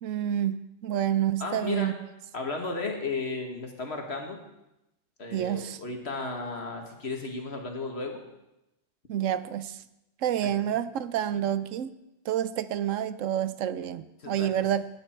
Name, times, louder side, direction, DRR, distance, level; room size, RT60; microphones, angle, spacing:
voice 1, 0.0-1.9 5.3-5.8 9.1-9.8 10.2-11.9 12.3-14.8, right 10 dB, 85° right, 14 dB, 1.0 m, -28 dB
voice 2, 1.4-2.0 2.3-4.4 5.2-8.2 10.4-10.8 11.3-11.4 14.2-14.6, left 3 dB, 55° left, 3 dB, 2.0 m, -34 dB
19.0 x 9.2 x 4.5 m, 0.91 s
omnidirectional pair, 1.3 m